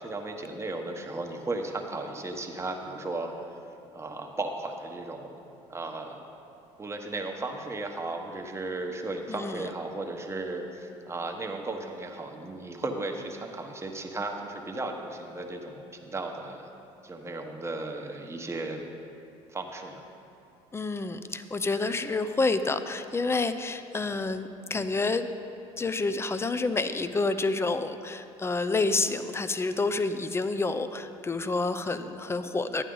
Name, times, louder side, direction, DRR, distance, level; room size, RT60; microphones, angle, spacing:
voice 1, 0.0-3.3 3.9-5.4 5.7-6.3 6.8-16.7 17.0-18.8 19.5-20.0, right 2 dB, 20° right, 2 dB, 1.1 m, -35 dB
voice 2, 9.3-9.7 20.7-25.3 25.8-32.8, left 3 dB, 20° left, 11 dB, 0.5 m, -29 dB
11.5 x 9.1 x 3.9 m, 2.7 s
supercardioid pair, 75°, 13 cm